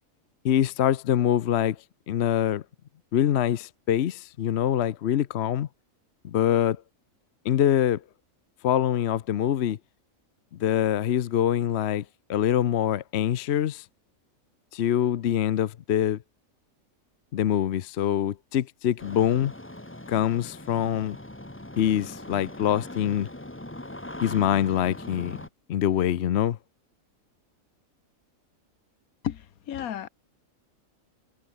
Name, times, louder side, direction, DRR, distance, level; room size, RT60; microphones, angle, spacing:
voice 1, 0.4-1.8 2.1-2.6 3.1-5.7 6.2-6.8 7.4-8.0 8.6-9.8 10.6-12.0 12.3-13.8 14.7-16.2 17.3-19.5 20.1-21.2 21.8-23.3 24.2-25.4 25.7-26.6, left 10 dB, 55° left, 0.9 m, -24 dB
Engine starting, 19.0-25.5, left 1 dB, 10° left, 1.4 m, -41 dB
voice 2, 29.2-30.1, left 10 dB, 85° left, 1.4 m, -33 dB
omnidirectional pair, 1.5 m